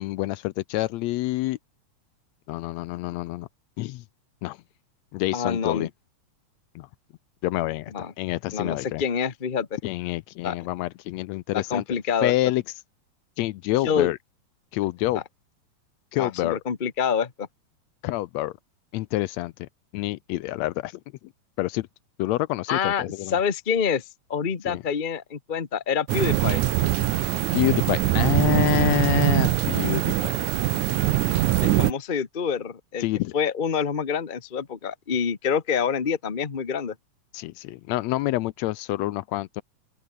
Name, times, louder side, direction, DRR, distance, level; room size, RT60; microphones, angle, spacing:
voice 1, 0.0-1.6 2.5-3.5 3.8-4.0 4.4-4.6 5.1-5.9 6.8-6.9 7.4-9.0 9.8-11.8 12.2-12.6 13.4-14.2 14.7-15.2 16.1-16.6 18.0-18.5 18.9-19.7 19.9-20.9 21.6-21.9 22.2-23.4 24.7-24.8 27.5-30.3 33.0-33.3 37.3-39.6, left 17 dB, 75° left, 1.8 m, -27 dB
voice 2, 5.3-5.9 7.9-8.1 8.5-9.8 10.4-10.6 11.5-12.3 13.8-14.1 15.1-15.2 16.2-17.5 22.7-26.6 31.6-33.1 33.3-36.9, left 7 dB, 60° left, 0.5 m, -27 dB
sound 1, 26.1-31.9, right 15 dB, 85° right, 2.3 m, -22 dB
open air
omnidirectional pair, 3.3 m